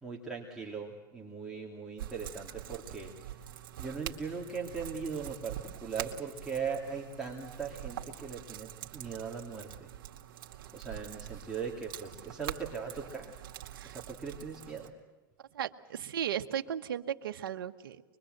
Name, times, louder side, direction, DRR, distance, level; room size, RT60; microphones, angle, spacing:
voice 1, 0.0-3.1 3.8-9.9 10.7-13.4 13.8-14.9, right 5 dB, 5° right, -3 dB, 2.7 m, -39 dB
sound 1, 2.0-14.9, right 12 dB, 70° right, 2.3 m, -45 dB
voice 2, 15.5-18.0, right 9 dB, 90° right, 7 dB, 1.1 m, -36 dB
24.5 x 22.5 x 7.9 m, 1.2 s
supercardioid pair, 130°, 12 cm